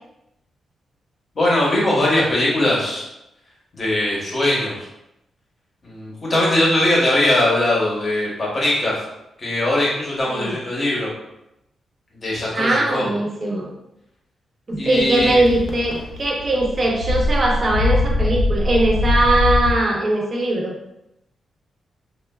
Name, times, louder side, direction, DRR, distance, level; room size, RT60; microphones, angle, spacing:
voice 1, 1.3-3.0 3.7-4.9 5.8-8.9 9.4-11.1 12.1-13.1 14.8-15.4, left 1 dB, 35° left, -5 dB, 0.8 m, -20 dB
voice 2, 12.5-13.7 14.7-20.7, right 1 dB, 30° right, -1 dB, 0.5 m, -20 dB
sound 1, 15.0-19.7, left 2 dB, 75° left, 0.4 m, -22 dB
3.0 x 2.2 x 2.2 m, 0.86 s
wide cardioid pair, 155°, 0 cm